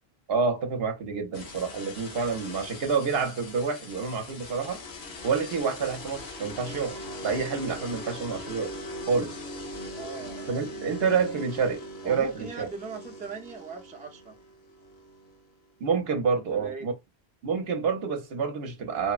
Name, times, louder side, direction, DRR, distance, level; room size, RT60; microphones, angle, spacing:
voice 1, 0.3-4.8 5.2-8.7 9.1-9.4 10.5-12.7 15.8-16.9 17.4-19.1, right 5 dB, 70° right, 0.9 m, -28 dB
sound 1, 1.3-15.9, left 1 dB, 80° left, 1.0 m, -41 dB
voice 2, 9.9-11.4 12.0-14.4 16.5-16.9, right 4 dB, 10° right, 0.4 m, -40 dB
3.1 x 2.0 x 2.3 m
omnidirectional pair, 1.1 m